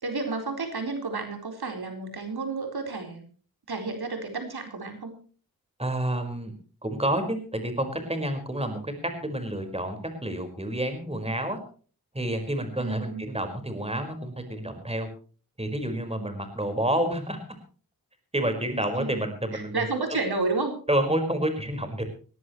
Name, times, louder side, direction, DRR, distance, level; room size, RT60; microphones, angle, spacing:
voice 1, 0.0-3.2 3.7-5.1 12.8-13.3 19.0-19.2 19.5-20.7, right 3 dB, 90° right, 4 dB, 4.2 m, -31 dB
voice 2, 5.8-6.5 6.8-8.9 9.2-11.6 12.1-15.1 15.6-17.4 18.3-19.9 20.9-22.0, right 1 dB, 15° right, 7 dB, 4.9 m, -29 dB
20.5 x 17.0 x 3.1 m, 0.40 s
wide cardioid pair, 80°, 37 cm